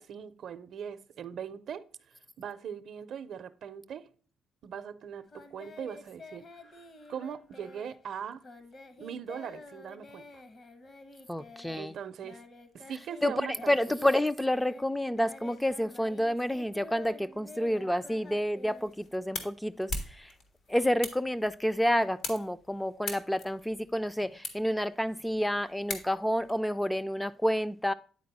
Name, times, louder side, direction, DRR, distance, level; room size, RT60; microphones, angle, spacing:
voice 1, 0.0-4.1 4.6-6.4 7.1-8.4 9.0-10.4 11.7-12.4 12.7-13.7, right 8 dB, 65° right, 0.5 m, -40 dB
Singing, 5.3-13.3 13.5-19.4, left 2 dB, 50° left, 1.1 m, -49 dB
voice 2, 11.3-11.9 13.2-20.3 20.7-27.9, equal, 5° left, 0.3 m, -29 dB
sound 1, 18.7-26.5, left 3 dB, 75° left, 1.5 m, -42 dB
9.5 x 4.1 x 4.0 m
cardioid pair, 90°, 0 cm